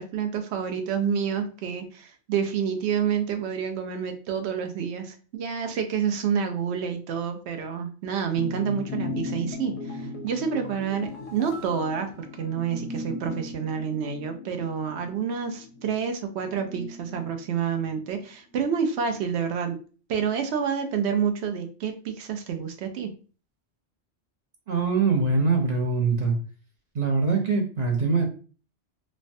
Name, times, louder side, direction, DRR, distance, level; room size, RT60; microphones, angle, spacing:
voice 1, 0.0-19.8 20.1-23.1, right 7 dB, 75° right, 6 dB, 0.8 m, -28 dB
sound 1, 8.3-18.2 18.5-18.6, left 3 dB, 80° left, 0.9 m, -38 dB
sound 2, 9.5-13.0 13.2-13.3, right 2 dB, 40° left, 0.5 m, -46 dB
voice 2, 24.7-26.4 26.9-28.2, right 4 dB, 50° right, 1 dB, 0.6 m, -23 dB
3.2 x 2.1 x 2.5 m, 0.38 s
omnidirectional pair, 1.2 m